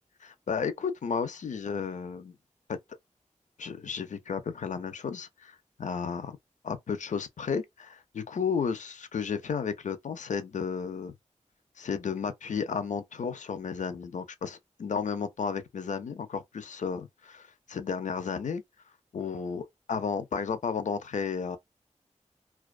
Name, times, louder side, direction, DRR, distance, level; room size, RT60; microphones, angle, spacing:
voice 1, 0.2-2.3 2.7-2.8 3.6-6.4 6.6-11.1 11.8-18.6 19.1-21.6, left 6 dB, 75° left, 0.4 m, -33 dB
2.3 x 2.3 x 2.4 m
wide cardioid pair, 90°, 13 cm